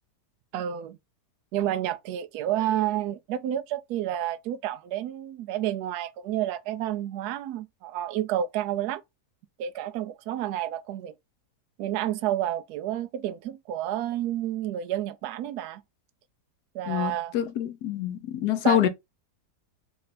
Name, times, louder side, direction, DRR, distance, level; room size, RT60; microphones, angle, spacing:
voice 1, 0.5-1.0 1.5-9.0 9.6-11.1 11.8-15.8 16.7-17.3 18.6-18.8, right 12 dB, 70° right, 1.1 m, -30 dB
voice 2, 16.9-18.9, left 11 dB, 70° left, 1.3 m, -26 dB
4.3 x 2.6 x 4.1 m
omnidirectional pair, 1.8 m